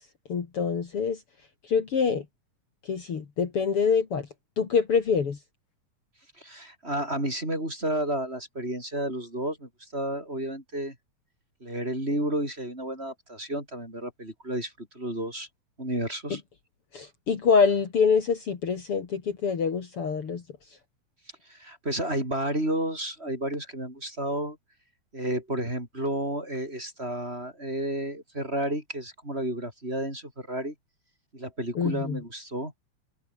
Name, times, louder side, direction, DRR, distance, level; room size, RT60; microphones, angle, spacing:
voice 1, 0.3-1.2 1.7-2.2 2.9-4.3 4.6-5.4 16.9-20.4 31.7-32.2, left 6 dB, 50° left, 3.1 m, -25 dB
voice 2, 6.4-10.9 11.6-15.5 15.8-16.4 21.5-24.6 25.1-30.7 31.3-32.7, right 1 dB, 20° right, 7.6 m, -31 dB
omnidirectional pair, 3.3 m